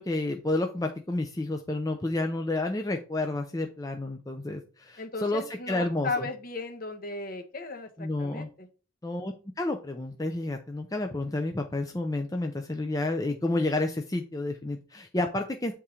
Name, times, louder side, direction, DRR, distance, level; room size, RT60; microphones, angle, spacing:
voice 1, 0.0-6.3 8.0-8.5 9.0-15.7, left 2 dB, 15° left, 4 dB, 0.5 m, -30 dB
voice 2, 5.0-8.7, left 3 dB, 45° left, 6 dB, 1.0 m, -36 dB
8.2 x 3.6 x 4.3 m, 0.36 s
head